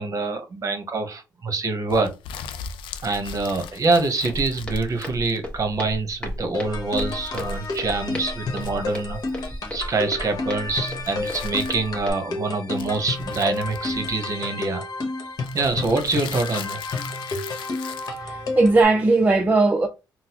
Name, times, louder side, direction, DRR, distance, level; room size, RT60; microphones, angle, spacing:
voice 1, 0.0-2.1 3.0-14.8 15.5-16.8, right 3 dB, 40° right, 0.9 m, -25 dB
sound 1, 1.9-5.6 6.9-8.2 8.5-9.7 10.7-12.0 12.7-14.5 15.4-18.2, left 6 dB, 90° left, 0.3 m, -39 dB
Walk footsteps, 4.2-12.1, equal, 15° left, 1.3 m, -35 dB
sound 2, 6.5-18.8, left 3 dB, 50° left, 1.0 m, -31 dB
voice 2, 18.2-19.9, right 3 dB, 20° right, 0.5 m, -18 dB
3.9 x 2.0 x 2.9 m
cardioid pair, 80°, 8 cm